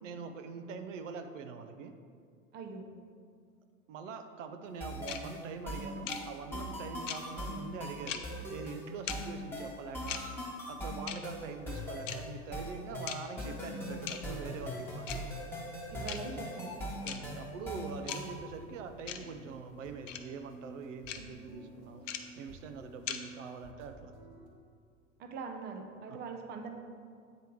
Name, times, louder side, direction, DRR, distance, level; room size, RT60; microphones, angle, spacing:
voice 1, 0.0-1.9 3.9-8.2 8.5-10.3 10.7-15.2 17.0-22.1 22.3-24.1 26.1-26.2, right 5 dB, 65° right, 7 dB, 0.6 m, -44 dB
voice 2, 2.5-2.9 15.9-16.8 25.2-26.7, right 4 dB, 25° right, 5 dB, 0.6 m, -42 dB
sound 1, 4.8-18.4, equal, 5° left, 1.2 m, -41 dB
sound 2, 5.1-5.2 6.1-6.2 7.1-7.2 8.1-8.2 9.1-9.2 10.1-10.2 11.1-11.2 12.1-12.2 13.1-13.2 14.1-14.2 15.1-15.2 16.1-16.2 17.1-17.2 18.1-18.2 19.1-19.2 20.1-20.2 21.1-21.2 22.1-22.2 23.1-23.2, left 10 dB, 65° left, 0.7 m, -37 dB
sound 3, 13.9-24.5, right 2 dB, 50° right, 1.4 m, -53 dB
8.7 x 3.4 x 4.6 m, 2.1 s
hypercardioid pair, 95°, 40 cm